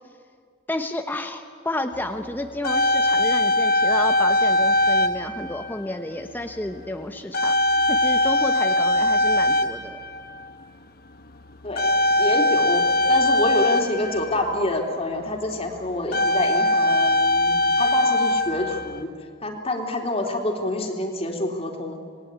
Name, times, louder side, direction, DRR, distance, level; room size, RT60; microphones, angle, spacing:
voice 1, 0.7-7.6 7.9-10.0, left 1 dB, 10° left, 5 dB, 1.0 m, -31 dB
sound 1, 2.1-2.2 2.4-6.0 6.7-6.9 7.3-10.6 11.7-14.8 15.5-15.6 15.9-19.0, left 1 dB, 50° left, 1.1 m, -21 dB
voice 2, 11.6-19.1 19.4-22.0, left 2 dB, 30° left, 2 dB, 3.2 m, -27 dB
27.5 x 19.5 x 9.6 m, 2.2 s
head